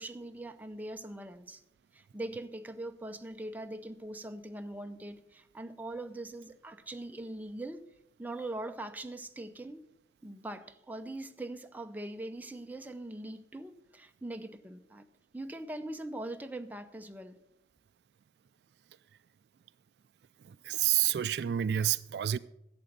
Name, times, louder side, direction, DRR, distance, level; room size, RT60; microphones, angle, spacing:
voice 1, 0.0-1.6 1.9-7.9 8.2-9.8 10.2-15.0 15.3-17.4, right 1 dB, 10° right, 0.6 m, -42 dB
voice 2, 20.4-22.4, right 11 dB, 65° right, 0.3 m, -29 dB
11.5 x 7.8 x 6.6 m
head